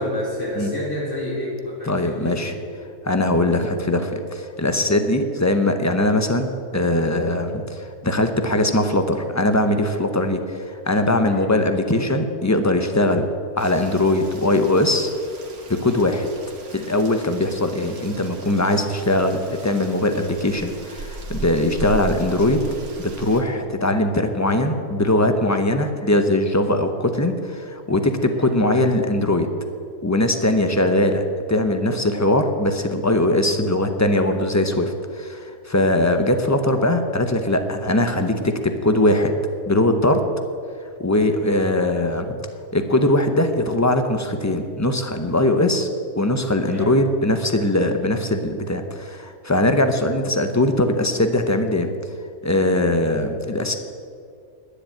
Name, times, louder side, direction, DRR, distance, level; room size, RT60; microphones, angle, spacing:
voice 1, 0.0-2.6 3.5-3.6 11.2-11.5 28.3-28.5 46.6-47.0, left 1 dB, 55° left, -5 dB, 4.4 m, -30 dB
voice 2, 1.8-2.5 3.0-13.3 13.6-15.1 15.7-16.3 16.7-22.6 23.0-29.5 30.0-39.3 39.7-40.2 41.0-42.4 42.7-45.9 46.2-51.9 52.4-53.7, left 1 dB, 15° left, 7 dB, 0.6 m, -21 dB
Rain, 13.6-23.4, right 3 dB, 85° right, 2.0 m, -37 dB
10.5 x 9.9 x 8.7 m, 2.3 s
omnidirectional pair, 1.5 m